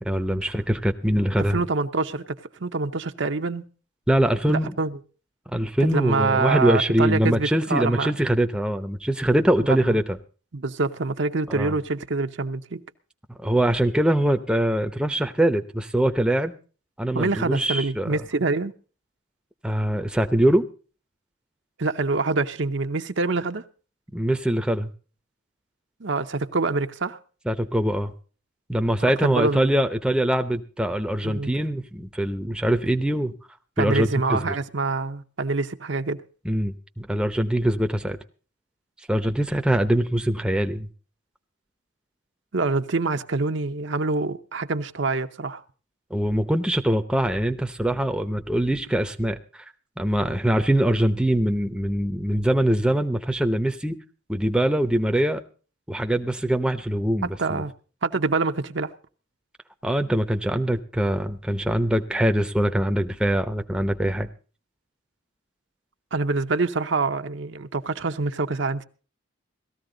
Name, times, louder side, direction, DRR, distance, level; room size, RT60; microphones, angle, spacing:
voice 1, 0.0-1.6 4.1-4.7 5.5-10.2 11.5-11.7 13.3-16.5 17.0-18.1 19.6-20.7 24.1-24.9 27.5-28.1 28.7-33.3 33.8-34.5 36.4-38.2 39.1-40.9 46.1-49.7 50.0-54.0 54.3-55.4 55.9-57.6 59.8-64.3, right 1 dB, 5° right, 0.7 m, -23 dB
voice 2, 1.5-2.2 2.6-3.6 4.5-4.9 5.9-8.1 9.7-10.0 10.5-12.8 17.1-18.7 21.8-23.6 26.0-27.2 29.2-29.8 31.2-31.5 33.8-36.2 42.5-45.6 57.4-57.7 58.0-58.9 66.1-68.8, right 3 dB, 60° right, 0.8 m, -25 dB
17.5 x 14.0 x 3.9 m
head